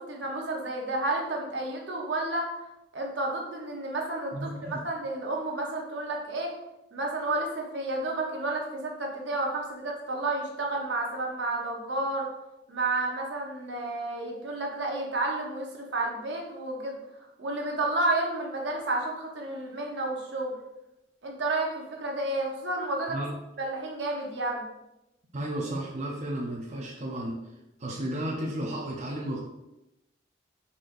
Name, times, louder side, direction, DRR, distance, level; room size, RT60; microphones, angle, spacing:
voice 1, 0.0-2.5 2.9-6.5 6.9-12.3 12.7-17.0 17.4-20.5 21.2-23.2 23.6-24.7, right 2 dB, 70° right, 0 dB, 0.9 m, -31 dB
voice 2, 4.3-4.8 23.1-23.3 25.3-27.4 27.8-29.4, right 1 dB, 40° right, -2 dB, 0.6 m, -33 dB
4.7 x 4.2 x 2.6 m, 0.90 s
head